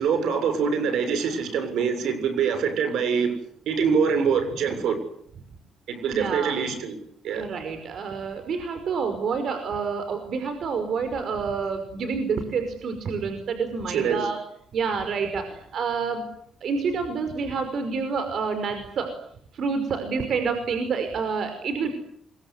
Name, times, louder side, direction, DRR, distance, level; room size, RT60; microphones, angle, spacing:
voice 1, 0.0-3.3 3.7-5.0 5.9-7.0 7.2-7.5 13.9-14.3, right 6 dB, 80° right, 10 dB, 7.2 m, -24 dB
voice 2, 6.1-6.6 7.3-14.4 14.7-16.3 16.6-19.2 19.5-21.9, right 5 dB, 60° right, 8 dB, 5.3 m, -28 dB
26.5 x 23.5 x 9.7 m, 0.68 s
cardioid pair, 90°, 0 cm